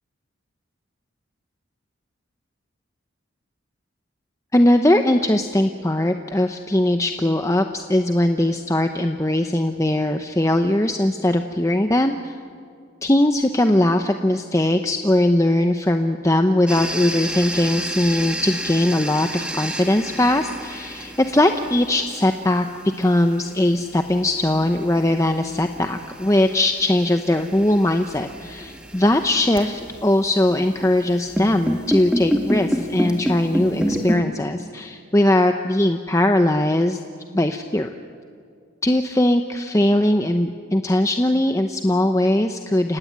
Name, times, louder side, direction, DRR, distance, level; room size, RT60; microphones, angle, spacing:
voice 1, 4.5-12.4 13.0-22.7 23.0-37.0 37.3-37.9 38.8-43.0, left 1 dB, 15° left, 6 dB, 0.7 m, -20 dB
sound 1, 16.7-34.2, equal, 5° right, 1.8 m, -30 dB
29.0 x 17.0 x 9.5 m, 2.2 s
head